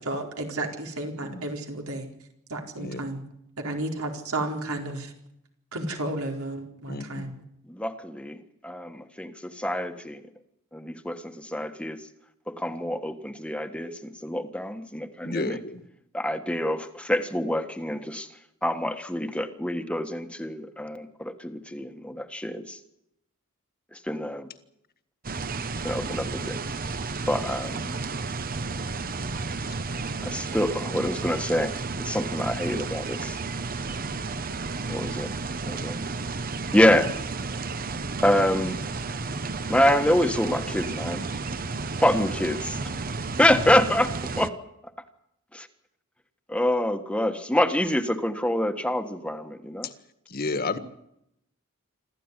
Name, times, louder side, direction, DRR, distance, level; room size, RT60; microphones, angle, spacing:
voice 1, 0.0-2.1 2.5-3.2 3.6-5.1 5.7-7.3, right 2 dB, 90° right, 3 dB, 4.5 m, -32 dB
voice 2, 1.1-1.5 2.8-3.1 6.8-7.3 15.2-15.8 29.5-29.8 49.8-49.9 50.3-50.8, left 3 dB, 45° left, 10 dB, 1.8 m, -32 dB
voice 3, 7.7-10.2 10.7-12.0 12.5-15.6 16.1-18.3 18.6-22.8 23.9-24.5 25.8-26.6 27.3-28.0 30.2-33.4 34.9-35.3 35.7-36.0 36.7-37.1 38.2-38.8 39.7-41.2 42.0-42.8 43.4-44.5 45.5-45.7 46.5-49.9, left 1 dB, 5° left, 8 dB, 1.4 m, -26 dB
sound 1, 25.2-44.5, right 3 dB, 40° right, 1.0 m, -32 dB
26.5 x 14.0 x 9.8 m, 0.78 s
head